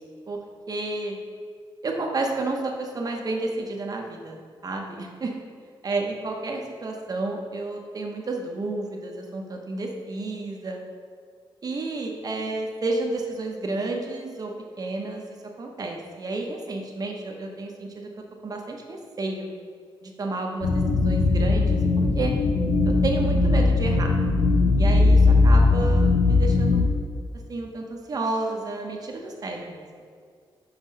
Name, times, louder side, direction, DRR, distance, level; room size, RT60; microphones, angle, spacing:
voice 1, 0.7-1.2 1.8-5.3 5.8-10.8 11.6-14.5 14.8-18.1 18.4-19.5 20.0-21.7 22.1-22.3 22.8-24.1 24.8-26.9 27.5-29.8, right 2 dB, 45° right, 1 dB, 0.9 m, -31 dB
sound 1, 20.6-26.8, left 3 dB, 80° left, 0.6 m, -19 dB
5.7 x 3.9 x 5.5 m, 2.1 s
cardioid pair, 105°, 9 cm